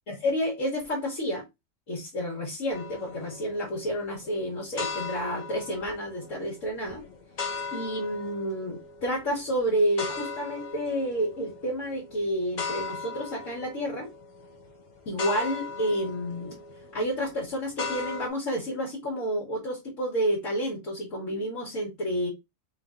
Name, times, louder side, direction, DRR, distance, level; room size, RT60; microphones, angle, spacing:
voice 1, 0.1-1.4 1.9-7.0 7.7-14.1 15.0-16.6 16.9-22.3, equal, 60° left, 1.6 m, -30 dB
sound 1, 2.7-18.3, left 4 dB, 40° left, 0.7 m, -39 dB
3.3 x 3.1 x 3.6 m
omnidirectional pair, 1.6 m